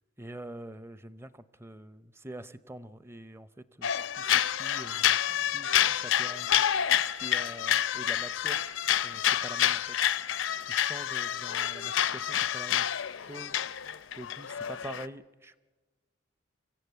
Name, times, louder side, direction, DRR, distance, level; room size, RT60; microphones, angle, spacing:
voice 1, 0.2-3.9 4.2-6.6 7.2-8.7 9.0-9.8 10.7-12.9 13.2-13.6 14.1-15.6, right 1 dB, 15° right, 15 dB, 0.6 m, -45 dB
sound 1, 3.8-15.1, left 10 dB, 80° left, 0.6 m, -28 dB
25.0 x 15.0 x 8.2 m, 1.3 s
head